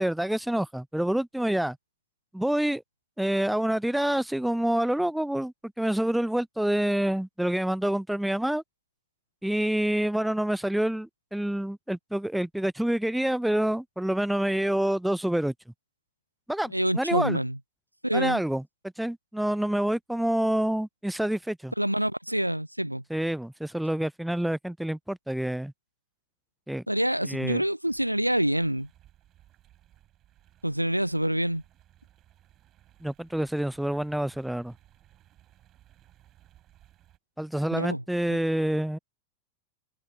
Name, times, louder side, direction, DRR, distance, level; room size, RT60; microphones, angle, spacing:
voice 1, 0.0-1.8 2.3-2.8 3.2-8.6 9.4-15.5 16.5-17.4 18.1-18.6 19.0-21.7 23.1-25.7 26.7-26.8 27.2-27.6 33.0-34.7 37.4-39.0, right 1 dB, ahead, 0.6 m, -27 dB
voice 2, 16.7-17.6 18.0-18.4 21.8-23.0 26.9-28.9 30.6-31.6 37.7-38.0 38.3-38.4, right 1 dB, 90° right, 0.5 m, -27 dB
sound 1, 27.8-37.2, right 13 dB, 30° right, 4.3 m, -60 dB
figure-of-eight pair, 90°, 0 cm